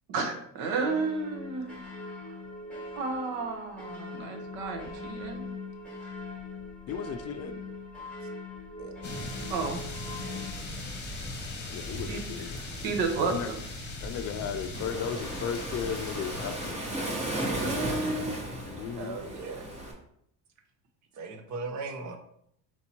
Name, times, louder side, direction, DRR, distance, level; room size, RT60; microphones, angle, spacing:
voice 1, 0.1-2.3 3.0-5.5 9.5-9.8 12.1-13.6 17.5-18.4, right 4 dB, 80° right, 4 dB, 1.1 m, -32 dB
sound 1, 0.9-10.5, left 2 dB, 5° left, 1.2 m, -41 dB
voice 2, 6.9-7.6 11.7-12.6 13.2-13.5 14.0-16.8 18.7-19.2, left 8 dB, 45° left, 9 dB, 0.4 m, -35 dB
sound 2, 9.0-16.7, left 1 dB, 30° left, 1.0 m, -39 dB
voice 3, 10.6-10.9 12.7-12.8 19.0-19.7 21.1-22.2, right 4 dB, 50° right, 6 dB, 0.8 m, -39 dB
Waves surf, 14.7-19.9, right 1 dB, 20° right, 0.9 m, -35 dB
4.4 x 2.8 x 4.3 m, 0.71 s
cardioid pair, 145°, 37 cm